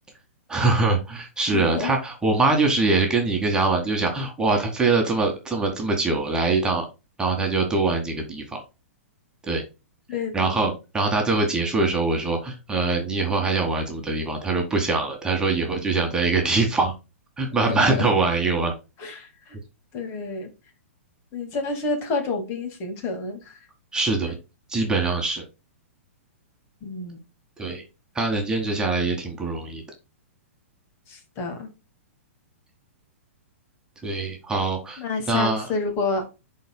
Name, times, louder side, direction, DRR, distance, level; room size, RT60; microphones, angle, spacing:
voice 1, 0.5-6.8 7.2-8.6 9.5-9.6 10.3-16.9 17.4-18.7 23.9-24.3 24.7-25.4 27.6-27.8 28.1-29.8 34.0-35.0 35.3-35.7, right 3 dB, 10° right, 1 dB, 1.7 m, -23 dB
voice 2, 1.5-1.9 10.1-10.7 17.6-18.1 19.0-19.6 19.9-20.5 21.3-23.6 26.8-27.2 31.1-31.7 35.0-36.2, left 4 dB, 35° left, 6 dB, 2.1 m, -29 dB
11.0 x 4.3 x 2.2 m, 0.27 s
hypercardioid pair, 120°, 7 cm